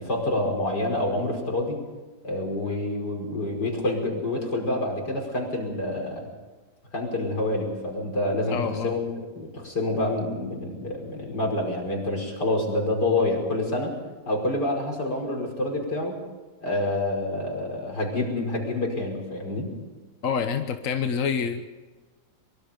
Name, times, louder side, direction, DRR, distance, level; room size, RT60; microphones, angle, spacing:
voice 1, 0.0-1.8 2.2-6.3 6.9-13.9 14.3-16.2 16.6-19.7, left 1 dB, 80° left, 1 dB, 6.0 m, -27 dB
voice 2, 8.5-8.9 20.2-21.7, left 6 dB, 55° left, 7 dB, 1.4 m, -27 dB
24.0 x 23.0 x 5.3 m, 1.3 s
omnidirectional pair, 1.7 m